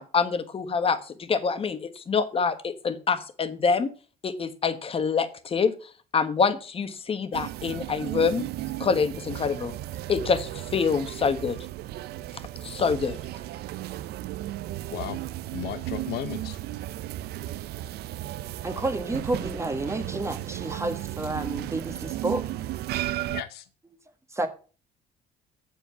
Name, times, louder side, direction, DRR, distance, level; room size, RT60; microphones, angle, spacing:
voice 1, 0.0-3.9 4.2-5.7 6.1-8.4 8.8-9.7 10.1-11.6 12.6-13.2, left 5 dB, 35° left, 1.3 m, -26 dB
sound 1, 7.3-23.4, right 14 dB, 70° right, 0.5 m, -35 dB
voice 2, 14.9-15.2 15.5-16.6 23.3-23.7, left 11 dB, 75° left, 0.8 m, -35 dB
voice 3, 18.6-22.4 24.3-24.5, right 2 dB, 15° right, 1.4 m, -30 dB
7.6 x 7.6 x 5.7 m
cardioid pair, 110°, 17 cm